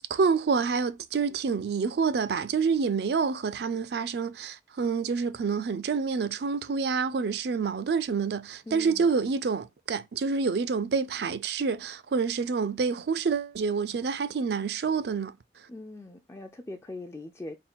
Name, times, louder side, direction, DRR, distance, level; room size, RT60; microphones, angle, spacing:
voice 1, 0.1-15.7, right 5 dB, 60° right, 0.4 m, -28 dB
voice 2, 8.7-9.1 15.7-17.6, left 2 dB, 15° left, 0.3 m, -41 dB
3.7 x 2.3 x 4.3 m
head